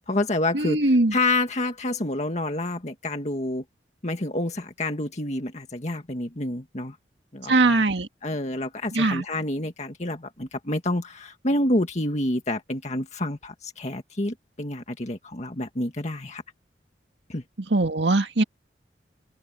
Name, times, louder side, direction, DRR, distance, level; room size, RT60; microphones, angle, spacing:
voice 1, 0.0-0.8 1.1-3.6 4.0-7.0 7.3-7.7 8.2-16.4 17.3-17.4, left 1 dB, 40° left, 1.9 m, -28 dB
voice 2, 0.5-1.2 7.5-8.1 8.9-9.2 17.7-18.4, right 2 dB, 80° right, 1.9 m, -21 dB
head